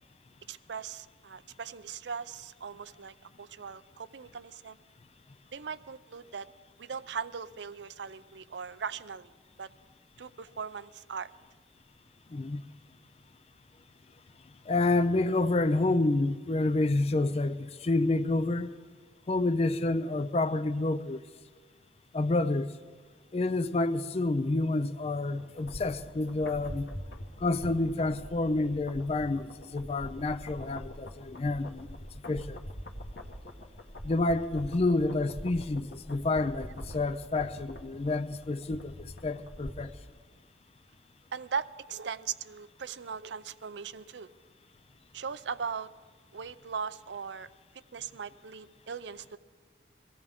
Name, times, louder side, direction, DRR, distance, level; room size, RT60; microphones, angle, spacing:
voice 1, 0.5-4.8 5.5-6.5 6.8-9.3 9.6-9.7 10.2-11.3 41.3-44.3 45.1-45.9 46.3-47.5 47.9-49.4, right 6 dB, 75° right, 0.5 m, -39 dB
voice 2, 12.3-12.6 14.7-18.7 19.3-21.2 22.1-22.7 23.3-26.9 27.4-32.0 32.3-32.6 34.0-39.9, left 2 dB, 35° left, 0.4 m, -29 dB
sound 1, 25.4-40.0 40.3-40.4, equal, 70° left, 1.4 m, -44 dB
23.5 x 16.5 x 3.6 m
head